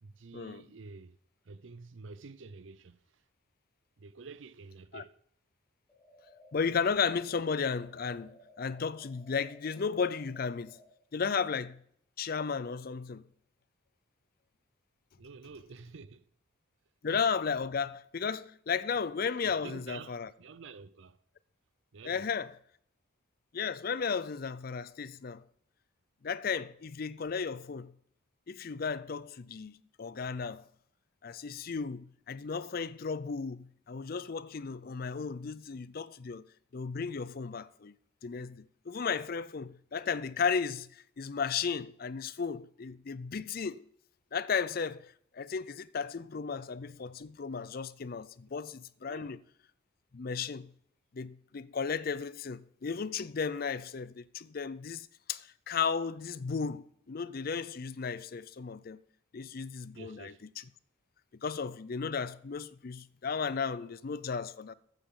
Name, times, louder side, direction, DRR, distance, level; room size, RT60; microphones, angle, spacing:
voice 1, 0.0-1.2 1.4-3.2 4.0-5.2 15.2-16.3 19.4-21.2 21.9-22.3 49.1-49.4 59.9-60.4, right 4 dB, 65° right, 0.6 m, -49 dB
sound 1, 5.9-10.9, left 1 dB, 5° left, 3.4 m, -58 dB
voice 2, 6.5-10.8 11.1-11.8 12.2-13.2 17.0-20.3 22.1-22.5 23.5-25.4 26.2-27.9 28.5-30.6 31.2-36.5 36.7-37.9 38.2-43.8 44.3-49.4 50.1-50.7 51.1-59.0 59.3-60.3 61.4-64.7, left 5 dB, 45° left, 0.4 m, -34 dB
14.0 x 9.1 x 3.7 m
head